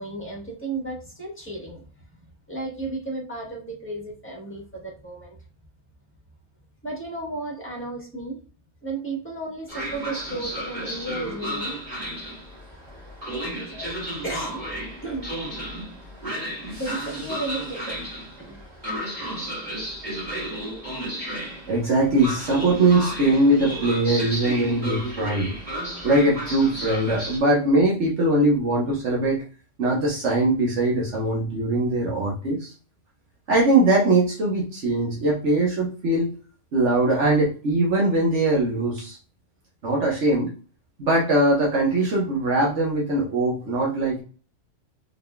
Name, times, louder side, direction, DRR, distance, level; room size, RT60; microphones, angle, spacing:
voice 1, 0.0-1.8 2.5-5.4 6.8-8.4 8.8-11.7 13.5-13.9 14.2-14.6 15.0-15.3 16.8-18.0 18.4-18.6, right 2 dB, 10° left, -2 dB, 1.5 m, -33 dB
Train, 9.7-27.4, right 1 dB, 35° right, 2.3 m, -33 dB
voice 2, 21.7-25.5 26.0-29.4 29.8-32.7 33.5-36.3 36.7-39.2 39.8-40.5 41.0-44.2, right 2 dB, 65° right, -3 dB, 1.4 m, -21 dB
4.1 x 3.8 x 2.2 m, 0.37 s
omnidirectional pair, 1.3 m